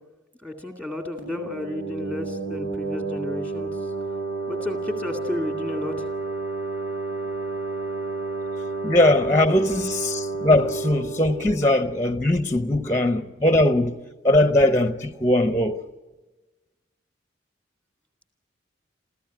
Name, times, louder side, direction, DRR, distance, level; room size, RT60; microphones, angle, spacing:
voice 1, 0.4-3.9 4.5-6.1, left 2 dB, 10° right, 2.1 m, -32 dB
sound 1, 1.2-12.6, right 3 dB, 85° right, 7.6 m, -31 dB
voice 2, 8.8-14.0 14.2-15.8, left 1 dB, 15° left, 0.8 m, -20 dB
28.5 x 14.5 x 9.3 m
head